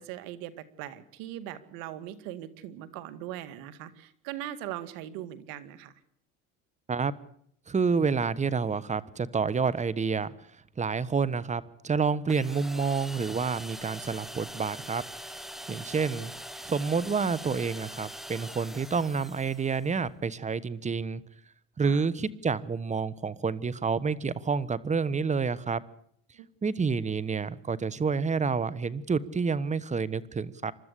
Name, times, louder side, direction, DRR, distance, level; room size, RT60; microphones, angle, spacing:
voice 1, 0.0-5.9 15.7-15.8 21.8-22.0 26.3-26.5, right 12 dB, 75° right, 13 dB, 2.3 m, -40 dB
voice 2, 7.7-10.3 10.8-15.0 15.7-16.3 16.6-21.2 21.8-25.8 26.6-30.7, right 5 dB, 20° right, 18 dB, 1.3 m, -28 dB
sound 1, 12.3-19.9, equal, ahead, 1.3 m, -43 dB
28.5 x 13.0 x 8.4 m, 0.68 s
supercardioid pair, 105°, 35 cm